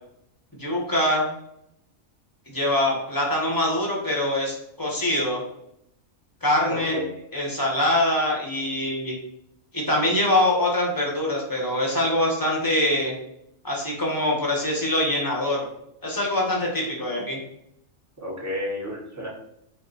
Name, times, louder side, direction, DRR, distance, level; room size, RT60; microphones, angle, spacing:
voice 1, 0.6-1.3 2.5-5.4 6.4-7.0 7.3-9.1 9.7-13.1 13.6-15.7 16.0-17.4, left 1 dB, 15° left, -3 dB, 1.0 m, -24 dB
voice 2, 6.7-7.0 18.2-19.3, left 1 dB, 15° right, -4 dB, 1.0 m, -31 dB
4.3 x 2.3 x 3.9 m, 0.76 s
omnidirectional pair, 1.4 m